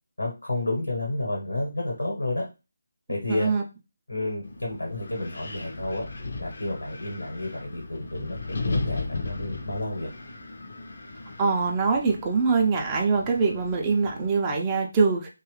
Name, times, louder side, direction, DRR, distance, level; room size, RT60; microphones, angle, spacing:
voice 1, 0.2-2.4 3.1-3.5 4.1-6.0 6.4-8.4 8.6-10.1, left 2 dB, 80° left, -2 dB, 1.1 m, -30 dB
voice 2, 3.3-3.6 11.4-15.3, right 4 dB, 20° right, 1 dB, 0.5 m, -23 dB
Wind, 4.4-14.4, left 3 dB, 55° left, 0.6 m, -36 dB
2.9 x 2.3 x 3.1 m, 0.28 s
figure-of-eight pair, 160°, 0 cm